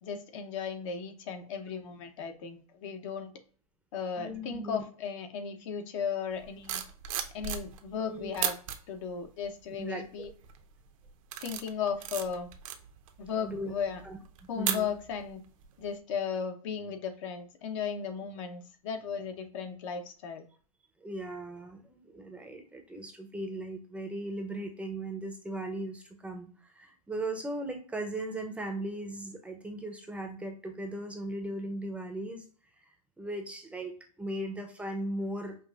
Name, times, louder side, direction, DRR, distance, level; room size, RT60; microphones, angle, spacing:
voice 1, 0.0-3.3 3.9-6.8 7.3-8.6 8.9-10.3 11.4-12.5 13.2-14.0 14.5-15.4 15.8-20.4, left 6 dB, 55° left, 6 dB, 0.8 m, -36 dB
voice 2, 4.2-4.8 8.0-8.4 9.8-10.3 13.4-13.7 14.0-14.9 21.0-32.4 32.8-32.9 33.2-35.6, right 1 dB, 5° right, 4 dB, 0.6 m, -38 dB
sound 1, 6.4-8.0 8.3-8.8 9.4-9.8 10.2-10.6 11.0-15.3 15.6-15.9, right 10 dB, 65° right, 0.7 m, -36 dB
5.4 x 2.4 x 2.3 m, 0.42 s
hypercardioid pair, 120°, 19 cm